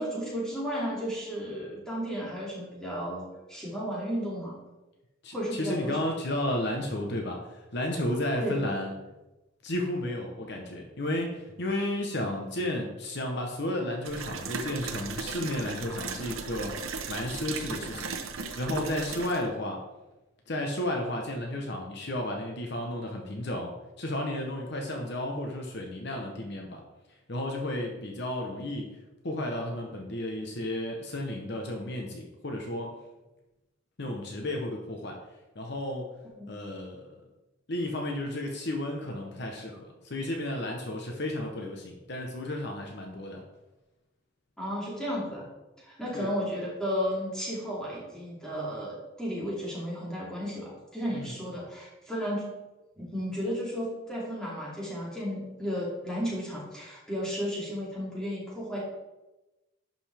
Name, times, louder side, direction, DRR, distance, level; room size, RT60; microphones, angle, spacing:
voice 1, 0.0-4.6 5.3-6.0 8.4-8.6 36.4-36.5 44.6-45.5 45.8-52.5 53.0-58.8, equal, 5° left, -6 dB, 2.5 m, -33 dB
voice 2, 5.2-8.9 9.6-16.7 17.1-18.1 18.5-19.8 20.5-26.8 27.3-28.9 29.2-33.0 34.0-35.2 35.5-36.1 36.5-37.1 37.7-43.4 46.1-46.3 51.1-51.3, left 1 dB, 55° left, 1 dB, 1.0 m, -33 dB
sound 1, 14.1-19.4, right 4 dB, 90° right, 0.8 m, -37 dB
11.0 x 5.3 x 3.5 m, 1.0 s
head